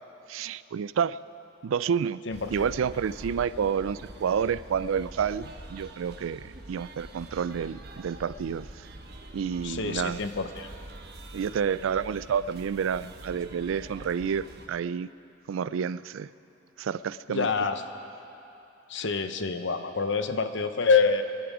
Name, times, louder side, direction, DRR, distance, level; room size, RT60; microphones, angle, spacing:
voice 1, 0.3-1.2 1.6-2.2 2.5-8.9 9.3-10.2 11.3-15.1 15.5-16.3 16.8-17.5, right 7 dB, 85° right, 18 dB, 0.3 m, -29 dB
voice 2, 2.2-2.7 9.6-10.7 17.3-17.8 18.9-21.2, left 5 dB, 65° left, 9 dB, 0.8 m, -26 dB
sound 1, 2.3-14.7, right 1 dB, 55° right, 1.1 m, -45 dB
23.5 x 11.0 x 4.9 m, 2.8 s
head